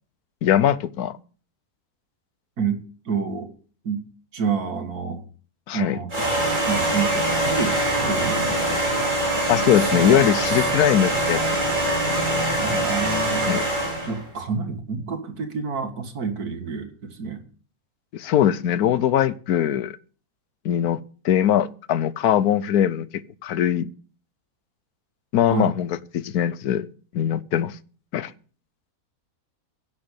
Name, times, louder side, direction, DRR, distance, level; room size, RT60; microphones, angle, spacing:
voice 1, 0.4-1.2 5.7-6.0 9.5-11.7 13.4-13.6 18.1-20.0 20.6-23.9 25.3-26.9 27.1-27.8 28.1-28.3, left 10 dB, 85° left, 1.2 m, -21 dB
voice 2, 2.6-3.5 3.8-4.0 4.3-5.2 5.7-6.3 6.7-7.8 8.1-8.8 9.8-10.0 10.5-10.7 12.6-13.6 14.0-17.4 25.5-25.7, right 5 dB, 90° right, 2.2 m, -28 dB
sound 1, 6.1-14.2, right 1 dB, 30° right, 4.6 m, -23 dB
11.0 x 7.0 x 8.3 m
omnidirectional pair, 1.6 m